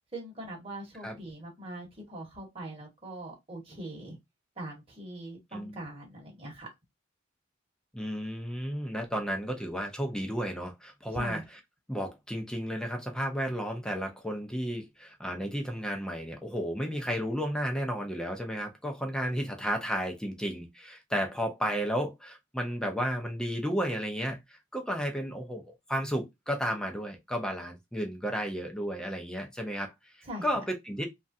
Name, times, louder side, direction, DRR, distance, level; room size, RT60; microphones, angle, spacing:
voice 1, 0.1-4.2 4.6-6.7 11.1-11.4 30.2-30.5, right 1 dB, 30° right, 1.1 m, -42 dB
voice 2, 7.9-11.6 11.9-30.1 30.4-31.1, equal, 5° left, 0.5 m, -33 dB
3.0 x 2.4 x 2.6 m
head